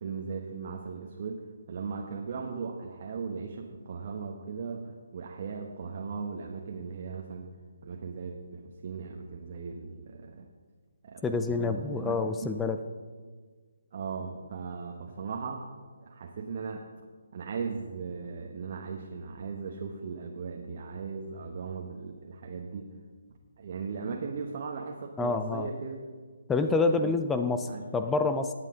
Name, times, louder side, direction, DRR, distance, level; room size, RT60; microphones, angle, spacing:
voice 1, 0.0-7.5 7.8-10.5 11.0-12.5 13.9-15.7 16.0-16.9 17.3-22.9 23.6-26.0 26.6-26.7 27.0-27.1 27.7-27.8, right 5 dB, 50° right, 1 dB, 1.1 m, -38 dB
voice 2, 11.2-12.8 25.2-25.7 26.5-28.5, left 3 dB, 10° left, 8 dB, 0.5 m, -27 dB
17.5 x 8.2 x 3.7 m, 1.5 s
figure-of-eight pair, 145°, 0 cm